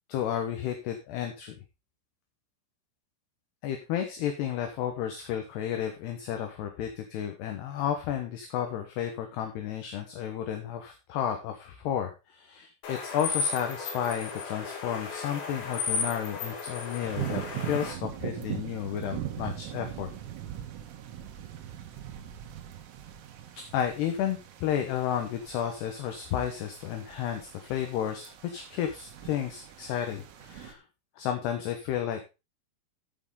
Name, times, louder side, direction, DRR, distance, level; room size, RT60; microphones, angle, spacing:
voice 1, 0.1-1.5 3.6-20.1 23.7-30.8 31.2-32.3, left 9 dB, 70° left, 5 dB, 2.9 m, -32 dB
sound 1, 12.8-17.9, left 5 dB, 55° left, 3.8 m, -34 dB
sound 2, 17.0-30.7, right 12 dB, 90° right, 4.1 m, -41 dB
14.0 x 6.3 x 3.8 m, 0.27 s
omnidirectional pair, 5.6 m